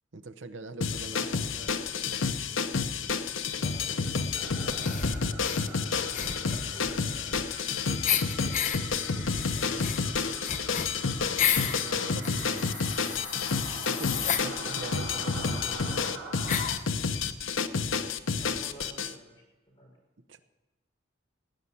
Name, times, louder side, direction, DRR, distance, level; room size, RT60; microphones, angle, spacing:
voice 1, 0.1-1.3 6.1-6.7 7.9-8.2 11.8-12.7 13.7-16.2 20.3-20.4, right 3 dB, 70° right, 11 dB, 0.8 m, -43 dB
sound 1, 0.8-19.1, left 5 dB, 80° left, 0.7 m, -30 dB
voice 2, 0.9-2.1 3.5-5.2 6.5-7.3 9.1-10.8 15.4-16.4 18.4-19.4 19.8-19.9, right 1 dB, 25° left, -3 dB, 5.3 m, -49 dB
sound 2, 4.3-16.7, right 3 dB, 90° right, 4.8 m, -44 dB
sound 3, 4.8-5.7 6.1-7.7 8.0-8.8 9.3-11.8 12.2-14.5 15.4-15.5 15.7-15.8 16.5-16.9, left 8 dB, 40° left, 0.8 m, -32 dB
17.5 x 5.9 x 9.7 m, 1.1 s
head